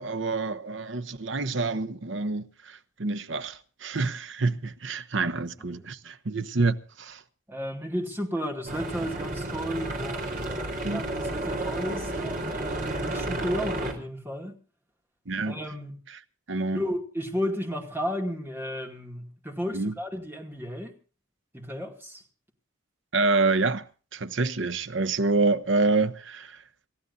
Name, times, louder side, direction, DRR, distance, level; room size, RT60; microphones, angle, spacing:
voice 1, 0.0-7.2 10.8-11.0 15.3-15.6 16.1-16.2 16.5-16.8 19.7-19.9 23.1-23.8 24.1-26.6, right 3 dB, 60° right, 0.9 m, -27 dB
voice 2, 7.5-14.5 15.5-16.0 16.7-20.9 21.5-22.2, equal, 10° right, 2.3 m, -33 dB
sound 1, 8.7-13.9, right 2 dB, 40° right, 3.8 m, -32 dB
28.0 x 14.5 x 2.6 m
head